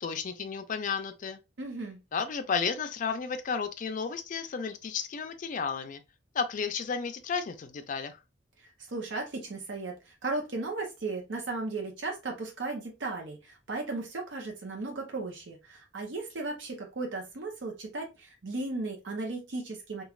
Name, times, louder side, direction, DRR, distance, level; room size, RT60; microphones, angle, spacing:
voice 1, 0.0-1.4 2.1-6.0 6.3-8.2, left 5 dB, 45° left, 0.4 m, -33 dB
voice 2, 1.6-2.0 8.9-20.0, right 3 dB, 80° right, 0.7 m, -36 dB
3.1 x 2.3 x 2.3 m
head